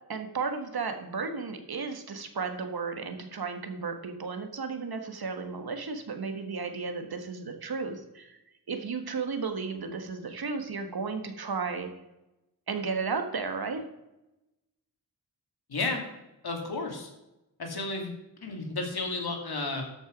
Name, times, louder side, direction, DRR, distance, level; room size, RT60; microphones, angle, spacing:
voice 1, 0.1-8.4 8.7-11.9 12.7-13.8, right 4 dB, 60° right, 6 dB, 1.6 m, -34 dB
voice 2, 15.7-16.0 16.4-17.1 17.6-18.1 18.4-19.8, left 3 dB, 65° left, 2 dB, 2.7 m, -32 dB
13.0 x 6.2 x 5.2 m, 0.94 s
wide cardioid pair, 90°, 41 cm